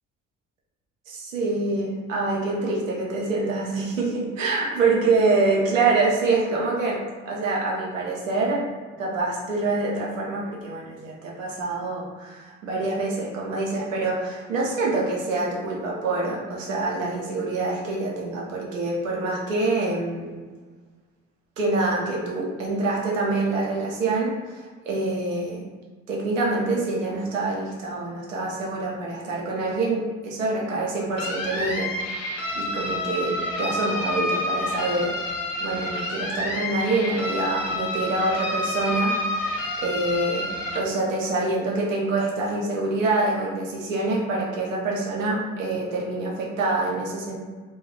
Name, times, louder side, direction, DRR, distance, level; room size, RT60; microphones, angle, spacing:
voice 1, 1.1-8.6 9.0-20.4 21.6-25.7 26.1-31.9 32.5-35.2 35.6-47.4, right 3 dB, 85° right, -3 dB, 0.6 m, -26 dB
sound 1, 31.2-40.8, left 1 dB, 85° left, 0.5 m, -29 dB
2.2 x 2.1 x 3.6 m, 1.4 s
figure-of-eight pair, 40°, 38 cm